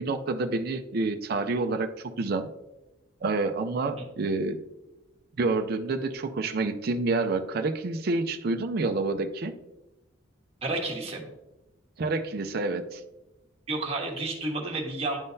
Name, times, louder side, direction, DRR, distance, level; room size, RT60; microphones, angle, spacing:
voice 1, 0.0-2.5 3.2-4.6 5.4-9.5 12.0-13.0, right 3 dB, 50° right, 7 dB, 0.4 m, -28 dB
voice 2, 10.6-11.3 13.7-15.2, right 2 dB, 30° right, -1 dB, 1.3 m, -31 dB
10.5 x 3.7 x 2.6 m, 0.97 s
head